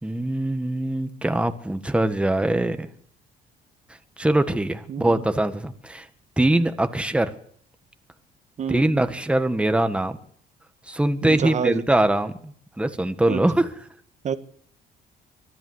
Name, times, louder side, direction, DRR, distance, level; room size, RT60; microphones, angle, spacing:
voice 1, 0.0-2.9 4.2-6.1 6.4-7.3 8.7-10.2 10.9-13.7, right 1 dB, 5° right, 9 dB, 1.6 m, -22 dB
voice 2, 4.9-5.2 8.6-8.8 11.2-11.8 13.3-13.4 14.2-14.4, right 7 dB, 45° right, 11 dB, 1.5 m, -28 dB
24.5 x 14.0 x 8.1 m, 0.62 s
cardioid pair, 110°, 17 cm